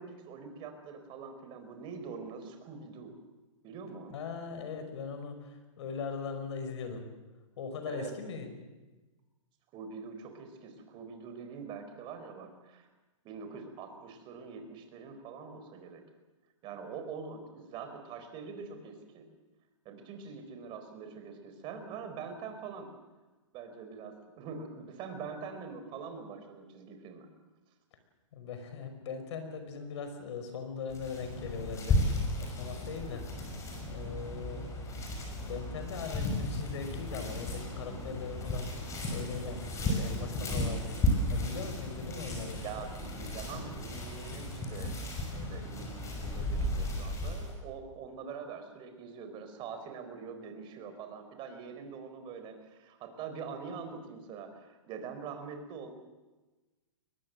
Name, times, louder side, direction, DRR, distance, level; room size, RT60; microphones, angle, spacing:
voice 1, 0.0-3.2 3.6-4.2 7.9-8.1 9.7-12.9 13.2-16.0 16.6-19.3 19.8-22.9 23.5-27.3 42.3-44.9 45.3-55.9, right 5 dB, 30° right, 6 dB, 4.3 m, -44 dB
voice 2, 4.1-7.1 7.6-8.5 28.3-33.2 33.8-35.1 35.4-38.9 39.1-41.0 41.3-42.7, left 5 dB, 60° left, 7 dB, 5.5 m, -40 dB
sound 1, 30.9-47.5, left 1 dB, 20° left, 6.1 m, -34 dB
22.5 x 21.0 x 7.7 m, 1.2 s
hypercardioid pair, 140°, 16 cm